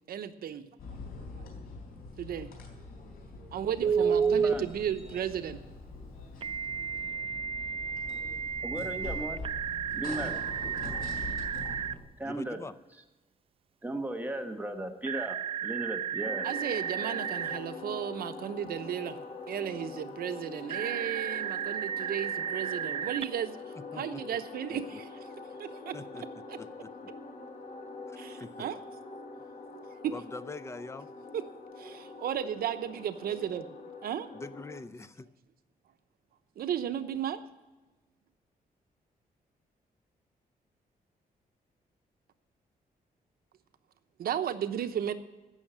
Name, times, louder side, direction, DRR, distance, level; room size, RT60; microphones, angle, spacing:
voice 1, 0.1-0.7 2.2-2.5 3.5-5.6 16.4-19.2 19.5-23.6 24.0-25.1 25.6-26.0 26.5-26.6 28.2-28.8 29.7-30.1 31.3-31.4 31.8-33.7 34.0-34.3 36.6-37.4 44.2-45.1, right 9 dB, 80° right, 9 dB, 0.9 m, -34 dB
sound 1, 0.8-12.0, left 3 dB, 85° left, 3.8 m, -44 dB
voice 2, 3.8-4.7 8.6-9.4 9.9-10.3 12.2-12.6 13.8-15.4 15.6-16.5, right 1 dB, 10° right, 4 dB, 1.2 m, -36 dB
Telephone, 3.8-4.6 6.4-11.9 15.0-17.6 20.7-23.2, right 7 dB, 35° right, 0.4 m, -32 dB
voice 3, 12.2-12.7 23.9-24.2 24.7-25.0 25.9-26.2 26.6-26.9 28.1-28.5 30.1-31.1 34.3-35.3, left 3 dB, 20° left, 13 dB, 0.6 m, -43 dB
sound 2, 16.2-34.8, left 3 dB, 55° left, 2.1 m, -44 dB
16.0 x 6.5 x 7.4 m, 1.2 s
wide cardioid pair, 140°, 15 cm